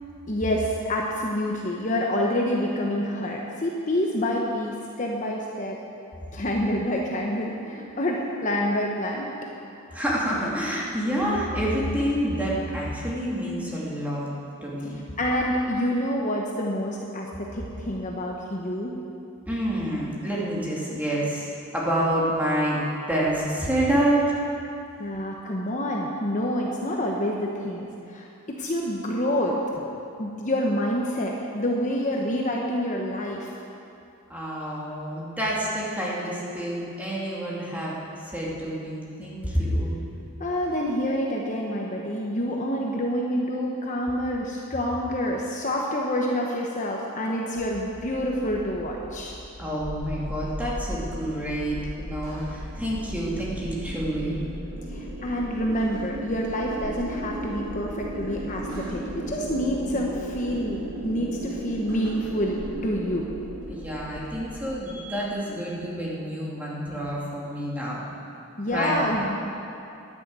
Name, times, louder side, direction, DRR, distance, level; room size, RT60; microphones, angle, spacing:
voice 1, 0.3-5.8 6.3-9.3 9.9-10.0 15.2-19.0 25.0-29.8 30.2-33.5 40.4-49.4 54.9-63.3 68.6-69.5, equal, 35° left, -1 dB, 1.0 m, -27 dB
voice 2, 9.9-14.3 14.6-14.9 19.5-22.8 23.1-24.2 34.3-39.9 49.6-54.4 63.7-68.1 68.7-69.0, right 1 dB, 5° right, -6 dB, 2.5 m, -28 dB
sound 1, 47.6-64.8, left 1 dB, 55° left, 1.6 m, -40 dB
sound 2, 49.3-65.0, right 1 dB, 70° right, 3.3 m, -38 dB
10.5 x 10.5 x 8.2 m, 2.7 s
head